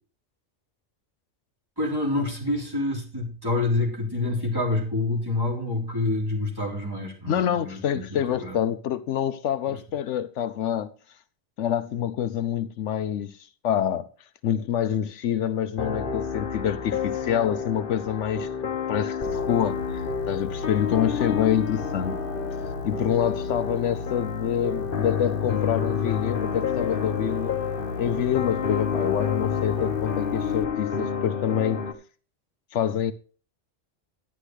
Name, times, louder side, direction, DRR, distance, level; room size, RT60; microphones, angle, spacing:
voice 1, 1.8-8.6 9.7-9.8, left 2 dB, 20° right, 3.8 m, -27 dB
voice 2, 7.3-10.9 11.6-13.4 13.6-14.1 14.4-18.5 18.9-22.2 22.8-27.6 28.0-31.8 32.7-33.1, left 9 dB, 75° left, 1.0 m, -26 dB
sound 1, 15.8-31.9, left 7 dB, 50° left, 1.1 m, -29 dB
sound 2, 19.2-30.6, left 2 dB, 25° left, 1.1 m, -36 dB
11.5 x 9.8 x 3.2 m
omnidirectional pair, 1.2 m